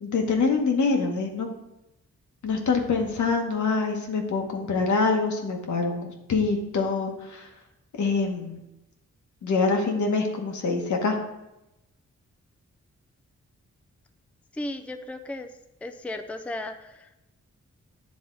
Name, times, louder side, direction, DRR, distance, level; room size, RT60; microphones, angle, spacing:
voice 1, 0.0-1.5 2.4-7.5 8.0-8.6 9.4-11.2, left 4 dB, 80° left, 2 dB, 1.2 m, -25 dB
voice 2, 14.5-15.5 15.8-17.2, left 1 dB, 5° left, 7 dB, 0.4 m, -35 dB
9.4 x 3.5 x 3.9 m, 0.92 s
cardioid pair, 85°, 29 cm